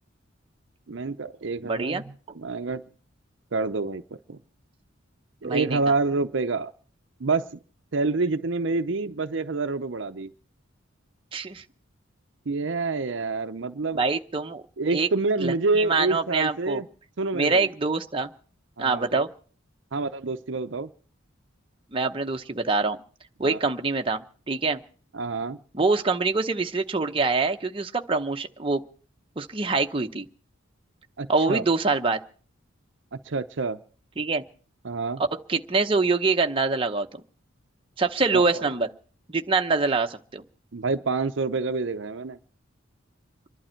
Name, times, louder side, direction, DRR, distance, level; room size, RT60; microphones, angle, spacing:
voice 1, 0.9-2.0 2.3-2.8 3.5-4.0 4.3-4.4 5.4-6.7 7.2-7.5 7.9-10.3 12.5-14.0 14.8-16.9 17.2-17.7 18.8-19.2 19.9-20.9 23.4-23.6 25.1-25.6 31.2-31.6 33.1-33.8 34.8-35.2 38.3-38.7 40.7-42.4, right 3 dB, 60° right, 9 dB, 0.6 m, -27 dB
voice 2, 1.6-2.0 5.4-5.8 11.3-11.6 13.9-14.6 14.9-15.1 15.4-16.8 17.3-18.3 18.8-19.3 21.9-23.0 23.4-24.8 25.7-28.8 29.4-30.3 31.3-32.2 34.2-34.4 35.5-37.1 38.0-38.9 39.3-40.4, right 3 dB, 25° right, 4 dB, 0.8 m, -25 dB
26.0 x 11.5 x 4.4 m, 0.43 s
head